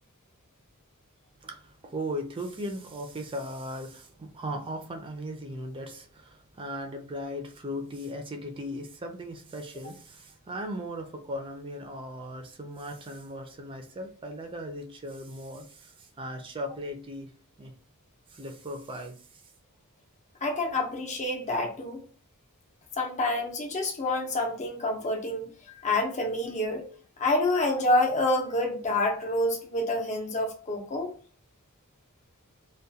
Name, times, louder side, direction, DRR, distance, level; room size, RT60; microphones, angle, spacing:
voice 1, 1.4-17.3 17.6-17.7 18.3-19.4, equal, 25° right, 0.4 m, -38 dB
voice 2, 20.4-22.0 23.0-25.5 25.8-26.8 27.2-31.1, left 2 dB, 30° left, 0.6 m, -27 dB
2.3 x 2.2 x 2.7 m
head